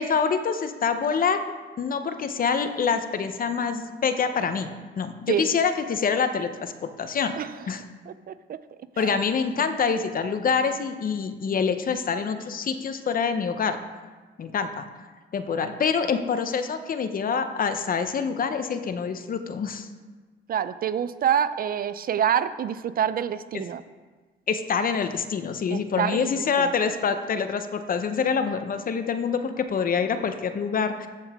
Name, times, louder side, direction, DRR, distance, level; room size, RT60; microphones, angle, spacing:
voice 1, 0.0-1.4 1.8-7.4 7.7-7.8 9.0-13.8 14.4-14.8 15.3-19.9 23.5-23.6 24.5-31.1, left 6 dB, 45° left, 9 dB, 0.7 m, -26 dB
voice 2, 8.1-8.6 9.0-9.2 20.5-23.8 25.7-26.3 26.6-26.7, right 9 dB, 50° right, 14 dB, 0.4 m, -26 dB
14.0 x 5.5 x 3.5 m, 1.4 s
cardioid pair, 90°, 20 cm